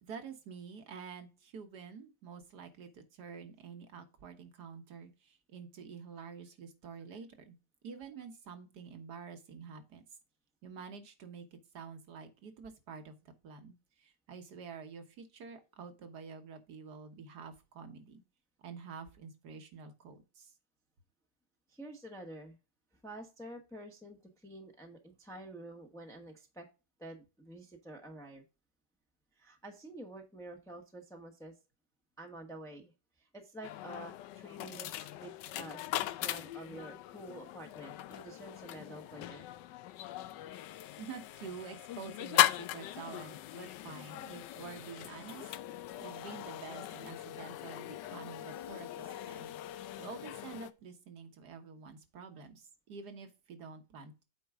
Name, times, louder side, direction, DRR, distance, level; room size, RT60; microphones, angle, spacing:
voice 1, 0.0-7.6 7.8-10.0 10.6-18.2 18.6-20.5 41.0-49.5 50.0-54.2, right 6 dB, 70° right, 7 dB, 1.8 m, -48 dB
voice 2, 21.7-22.6 23.0-26.7 27.0-28.4 29.4-31.5 32.2-32.9 33.2-39.4, right 1 dB, ahead, 2 dB, 0.9 m, -49 dB
sound 1, 33.6-50.7, left 13 dB, 90° left, 1.2 m, -38 dB
8.5 x 4.6 x 3.6 m, 0.29 s
omnidirectional pair, 1.9 m